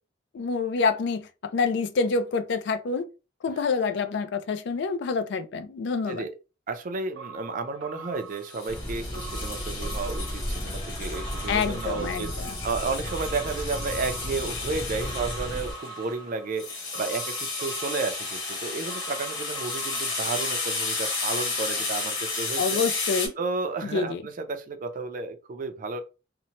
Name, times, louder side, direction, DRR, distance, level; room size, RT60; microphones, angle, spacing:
voice 1, 0.3-3.1 3.4-6.2 11.5-12.5 22.6-23.3 23.9-24.2, left 4 dB, 65° left, 0.4 m, -27 dB
voice 2, 6.7-22.8 23.4-26.0, right 4 dB, 45° right, 0.4 m, -32 dB
sound 1, 7.1-20.4, right 5 dB, 80° right, 0.7 m, -44 dB
sound 2, 8.4-23.3, left 3 dB, 90° left, 1.2 m, -33 dB
sound 3, 8.7-15.7, equal, 15° left, 0.7 m, -34 dB
2.7 x 2.1 x 2.8 m
head